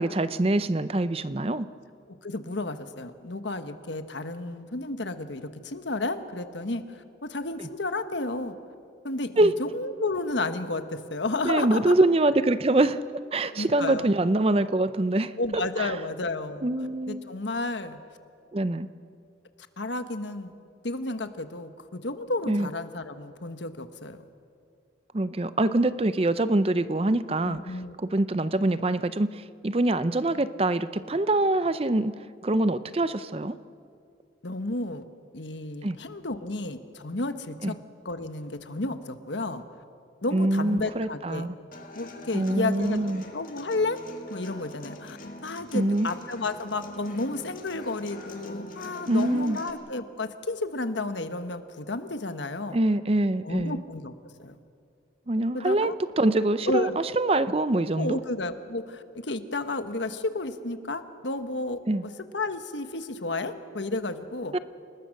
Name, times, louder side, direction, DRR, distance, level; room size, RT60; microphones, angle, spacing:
voice 1, 0.0-1.7 9.4-9.5 11.4-13.0 13.3-15.9 16.6-17.2 18.5-18.9 22.5-22.7 25.1-27.6 28.0-32.1 32.4-33.6 35.8-36.0 37.6-37.7 40.3-41.5 42.3-43.2 45.7-46.1 49.1-49.6 52.7-53.8 55.3-58.2 61.9-62.0 64.5-64.6, right 2 dB, 30° right, 14 dB, 0.5 m, -24 dB
voice 2, 2.1-8.5 9.0-11.9 13.5-14.1 15.4-16.7 17.1-18.0 19.8-20.5 20.8-24.2 27.4-27.9 34.4-35.0 35.3-37.7 38.0-39.6 40.2-41.5 41.9-44.0 44.3-52.8 53.4-54.5 55.5-55.9 56.7-57.0 57.9-64.5, left 2 dB, 75° left, 9 dB, 1.3 m, -32 dB
Human voice / Acoustic guitar, 41.7-49.7, left 1 dB, 45° left, 2.0 m, -43 dB
28.5 x 19.5 x 6.5 m, 2.3 s
head